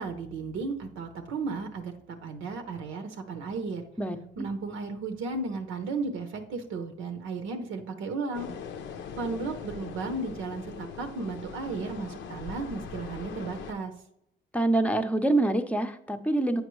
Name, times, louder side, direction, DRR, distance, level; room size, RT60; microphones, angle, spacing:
voice 1, 0.0-3.8 4.4-8.5 9.2-13.9, right 3 dB, 90° right, 6 dB, 0.8 m, -34 dB
sound 1, 8.3-13.7, left 6 dB, 70° left, 0.7 m, -41 dB
voice 2, 14.5-16.6, right 2 dB, 5° left, 7 dB, 0.6 m, -25 dB
8.1 x 5.2 x 3.1 m, 0.77 s
cardioid pair, 90°, 20 cm